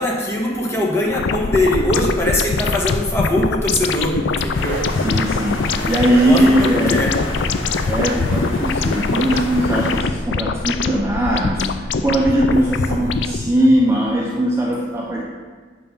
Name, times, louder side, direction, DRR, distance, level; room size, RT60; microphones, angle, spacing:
voice 1, 0.0-4.8 5.7-7.2 7.7-7.9 12.5-12.6 13.0-13.2, left 1 dB, 15° left, -3 dB, 1.5 m, -22 dB
sound 1, 1.1-13.5, left 4 dB, 65° left, 0.4 m, -23 dB
Bark, 4.3-5.1 5.6-6.6 8.0-8.2 9.3-9.5 10.8-11.0 11.3-11.5 12.3-12.5 12.8-13.7, right 6 dB, 50° right, 0.3 m, -33 dB
sound 2, 4.5-10.0, left 2 dB, 85° left, 1.2 m, -29 dB
voice 2, 5.0-7.0 7.8-15.2, right 1 dB, 15° right, -3 dB, 0.7 m, -19 dB
8.2 x 5.6 x 5.5 m, 1.5 s
head